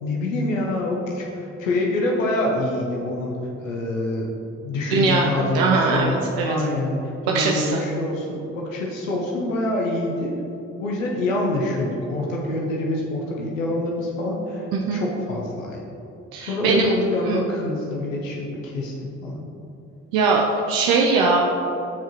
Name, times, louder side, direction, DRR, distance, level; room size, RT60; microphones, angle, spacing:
voice 1, 0.0-4.3 4.6-10.3 10.8-15.8 16.4-19.5, left 1 dB, 90° left, -1 dB, 0.7 m, -26 dB
voice 2, 4.9-6.5 7.3-7.8 14.7-15.0 16.3-16.9 17.3-17.4 20.1-21.4, right 4 dB, 70° right, 0 dB, 0.7 m, -21 dB
13.0 x 4.7 x 3.0 m, 2.8 s
hypercardioid pair, 40°, 38 cm